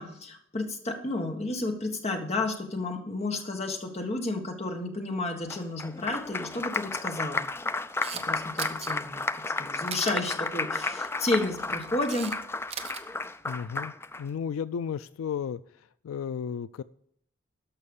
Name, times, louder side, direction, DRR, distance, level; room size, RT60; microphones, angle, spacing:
voice 1, 0.0-7.5 8.1-12.3, left 2 dB, 30° left, 4 dB, 1.5 m, -32 dB
Applause, 5.5-14.2, left 3 dB, 10° left, 0.3 m, -33 dB
Camera, 7.8-8.2 8.6-8.9 9.9-10.1 11.4-12.4 12.6-13.0, right 7 dB, 30° right, 0.9 m, -37 dB
voice 2, 13.4-13.9 14.2-15.6 16.0-16.8, left 7 dB, 90° left, 16 dB, 0.3 m, -33 dB
13.0 x 5.6 x 5.3 m, 0.69 s
head